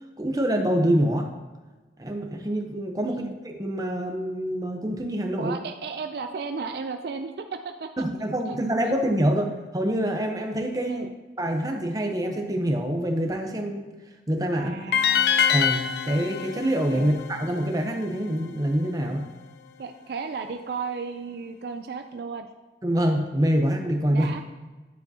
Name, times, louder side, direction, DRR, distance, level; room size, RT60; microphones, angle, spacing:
voice 1, 0.2-1.3 2.0-3.2 3.6-5.5 8.0-11.1 11.4-13.9 14.3-14.7 15.5-19.3 22.8-24.3, right 1 dB, 20° right, 3 dB, 0.7 m, -25 dB
voice 2, 5.4-8.0 8.5-8.6 10.9-11.1 14.5-15.4 16.9-17.1 19.8-22.5 24.1-24.4, right 5 dB, 65° right, 7 dB, 0.4 m, -34 dB
sound 1, 14.9-18.1, left 7 dB, 65° left, 0.4 m, -25 dB
9.2 x 7.0 x 2.8 m, 1.2 s
head